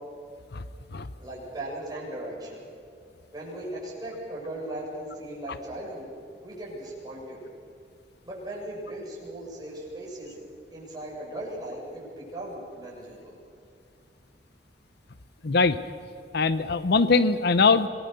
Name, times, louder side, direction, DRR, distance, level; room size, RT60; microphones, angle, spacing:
voice 1, 1.2-2.6 3.3-6.1 6.4-7.4 8.2-10.4 10.7-13.4, right 1 dB, 20° right, -4 dB, 7.7 m, -38 dB
voice 2, 15.4-15.8 16.3-17.9, left 4 dB, 65° left, 13 dB, 0.8 m, -21 dB
26.5 x 20.5 x 6.8 m, 2.4 s
head